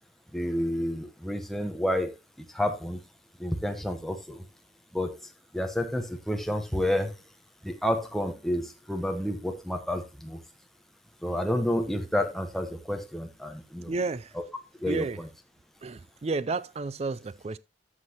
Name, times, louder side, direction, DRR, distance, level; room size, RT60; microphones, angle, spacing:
voice 1, 0.3-2.1 2.5-3.0 3.4-4.5 4.9-5.1 5.5-7.1 7.6-10.4 11.2-13.9 14.3-14.4 14.8-15.3, left 1 dB, ahead, 1.0 m, -30 dB
voice 2, 13.9-14.3 14.9-15.2 15.8-17.6, right 3 dB, 35° right, 0.4 m, -31 dB
13.0 x 6.2 x 2.9 m
head